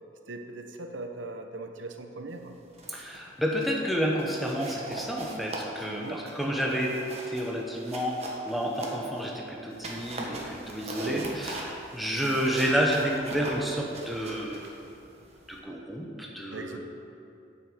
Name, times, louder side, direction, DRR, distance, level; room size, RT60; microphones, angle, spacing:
voice 1, 0.3-2.6 5.8-6.2 11.0-11.3 16.5-16.8, right 2 dB, 80° right, 5 dB, 0.9 m, -39 dB
sound 1, 2.6-3.2 3.5-3.8 4.2-9.3 9.7-15.6, right 2 dB, 35° right, 1.3 m, -41 dB
voice 2, 2.9-7.0 7.2-14.7 15.5-16.8, equal, ahead, -2 dB, 0.9 m, -30 dB
8.7 x 6.2 x 7.7 m, 2.6 s
head